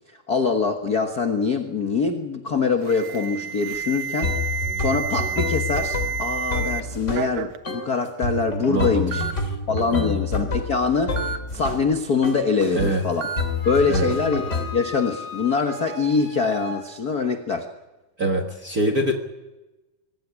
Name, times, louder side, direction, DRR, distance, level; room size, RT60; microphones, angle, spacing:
voice 1, 0.3-4.5 4.8-9.3 9.7-13.3 13.6-17.7, left 4 dB, 55° left, 5 dB, 1.0 m, -24 dB
Alarm, 2.8-6.8 7.1-7.6 8.4-8.5 9.1-9.3 11.2-11.4 13.2-13.4, right 7 dB, 70° right, 2.1 m, -29 dB
sound 1, 3.7-3.8 4.2-7.3 7.6-7.9 8.2-11.9 12.2-12.9 13.4-14.7, left 3 dB, 20° left, 3.2 m, -28 dB
voice 2, 8.7-9.3 9.9-10.2 12.7-13.0 13.9-14.1 18.2-19.1, right 1 dB, 40° right, 5 dB, 1.4 m, -24 dB
Wind instrument woodwind instrument, 12.7-16.8, left 4 dB, 10° right, 7.8 m, -37 dB
24.0 x 15.5 x 9.8 m, 1.1 s
omnidirectional pair, 3.9 m